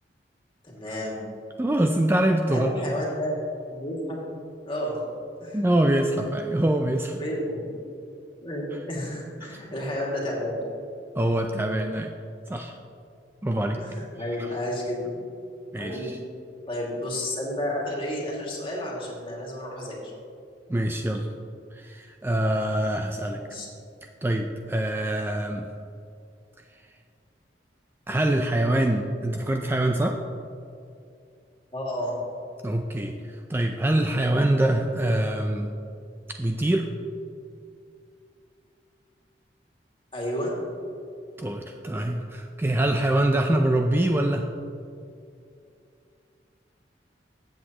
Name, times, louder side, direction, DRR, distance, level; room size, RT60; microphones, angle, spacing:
voice 1, 0.6-1.2 2.5-3.3 3.6-4.2 4.6-5.1 5.4-5.6 7.2-7.7 8.4-10.6 13.8-15.2 15.7-16.2 16.7-20.1 23.3-23.7 31.7-32.2 40.1-40.5, left 1 dB, 30° left, -3 dB, 2.2 m, -31 dB
voice 2, 1.6-2.7 5.5-7.2 9.4-9.6 11.2-12.1 12.5-12.8 13.4-13.8 15.7-16.2 20.7-21.3 21.7-23.4 24.2-25.7 28.1-30.2 32.6-35.7 36.4-36.9 41.4-44.5, right 1 dB, 15° right, 4 dB, 0.4 m, -24 dB
14.0 x 7.9 x 3.0 m, 2.6 s
head